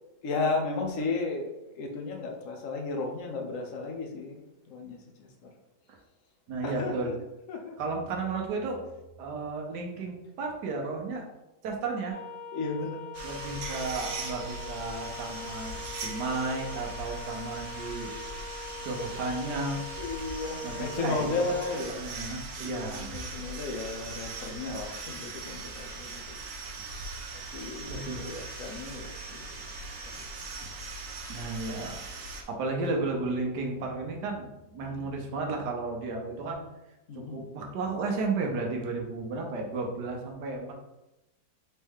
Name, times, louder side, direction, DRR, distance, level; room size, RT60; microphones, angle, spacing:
voice 1, 0.2-5.5 6.6-7.1 7.5-7.8 12.5-13.0 20.0-22.1 22.5-26.4 27.5-29.7 30.1-30.2 34.8-35.1 37.1-37.4, left 3 dB, 60° left, 2 dB, 1.0 m, -34 dB
voice 2, 6.5-7.1 7.8-8.8 9.2-11.3 11.6-12.2 13.2-15.8 16.0-18.2 18.8-19.8 20.6-21.2 21.9-23.6 27.8-28.3 31.3-32.0 32.5-36.6 37.1-40.7, right 3 dB, 75° right, 1 dB, 1.3 m, -33 dB
sound 1, 12.1-21.8, left 4 dB, 50° right, 1.1 m, -42 dB
sound 2, 13.1-32.4, right 3 dB, 90° right, 1.5 m, -40 dB
4.4 x 3.2 x 3.5 m, 0.94 s
omnidirectional pair, 1.9 m